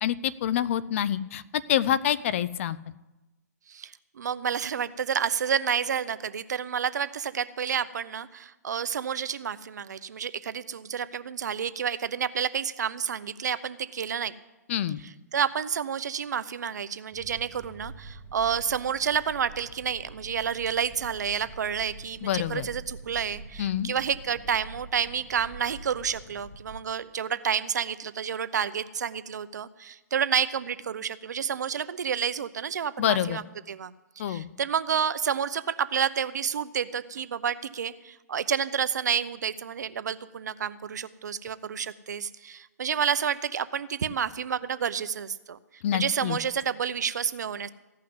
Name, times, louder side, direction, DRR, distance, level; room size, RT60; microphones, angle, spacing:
voice 1, 0.0-2.8 14.7-15.0 22.2-22.7 23.6-23.9 33.0-33.4 34.2-34.5 45.8-46.4, left 10 dB, 50° left, 17 dB, 0.6 m, -27 dB
voice 2, 3.7-14.3 15.3-45.6 45.9-47.7, right 7 dB, 80° right, 15 dB, 0.7 m, -30 dB
sound 1, 17.1-26.8, right 2 dB, 10° right, 1.9 m, -46 dB
15.5 x 5.8 x 9.5 m, 1.1 s
hypercardioid pair, 140°, 9 cm